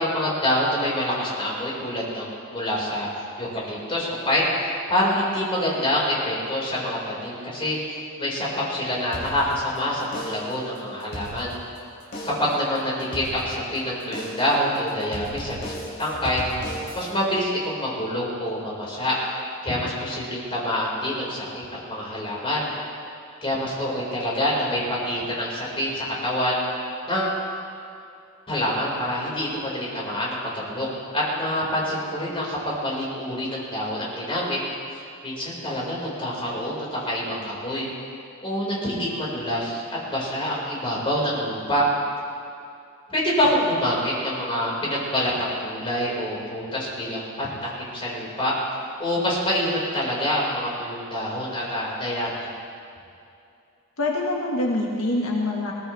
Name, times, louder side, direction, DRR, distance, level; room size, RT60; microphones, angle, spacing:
voice 1, 0.0-3.1 3.4-7.8 8.2-11.5 12.2-16.4 16.9-19.2 19.6-22.7 23.4-26.6 27.1-27.4 28.5-30.9 31.1-34.6 35.2-37.9 38.4-41.8 43.1-48.6 49.0-52.5, left 1 dB, 25° left, -5 dB, 4.8 m, -26 dB
sound 1, 9.1-9.8 10.1-10.6 11.0-11.8 12.1-12.6 13.1-13.8 14.1-14.6 15.1-17.1, equal, 50° left, 3.7 m, -36 dB
voice 2, 54.0-55.7, left 2 dB, 75° left, -2 dB, 1.7 m, -25 dB
21.0 x 18.5 x 3.4 m, 2.6 s
head